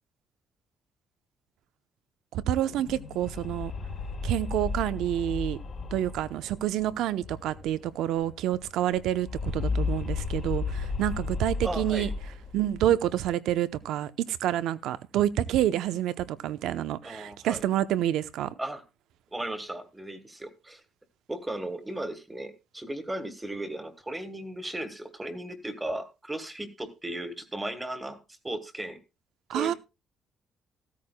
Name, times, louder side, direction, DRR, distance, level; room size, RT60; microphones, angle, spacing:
voice 1, 2.3-3.7 4.2-5.6 5.9-12.1 12.5-18.5 29.5-29.7, right 12 dB, 90° right, 0.8 m, -28 dB
sound 1, 2.6-7.9 8.2-8.3 8.5-12.9, left 4 dB, 35° left, 1.5 m, -34 dB
voice 2, 11.6-12.1 17.0-17.6 18.6-18.8 19.3-20.8 21.3-29.0 29.5-29.7, right 1 dB, 10° right, 1.5 m, -36 dB
15.5 x 13.5 x 2.2 m
cardioid pair, 170°, 0 cm